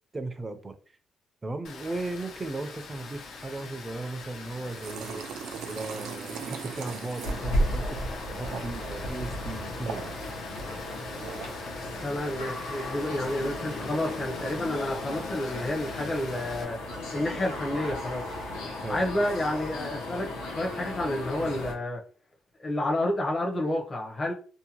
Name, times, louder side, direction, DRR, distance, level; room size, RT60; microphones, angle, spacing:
voice 1, 0.1-0.8 1.4-5.3 5.7-8.0 8.3-10.2 18.8-19.0, right 2 dB, 25° right, 0.5 m, -36 dB
Water, 1.6-16.6, left 4 dB, 75° left, 0.6 m, -44 dB
sound 1, 4.4-11.6, right 7 dB, 80° right, 0.3 m, -41 dB
sound 2, 7.2-21.7, left 1 dB, 90° left, 0.9 m, -34 dB
voice 2, 12.0-16.8 17.1-18.4 18.9-22.0 22.6-24.3, left 1 dB, 35° left, 0.7 m, -30 dB
2.7 x 2.1 x 2.9 m
cardioid pair, 90°, 0 cm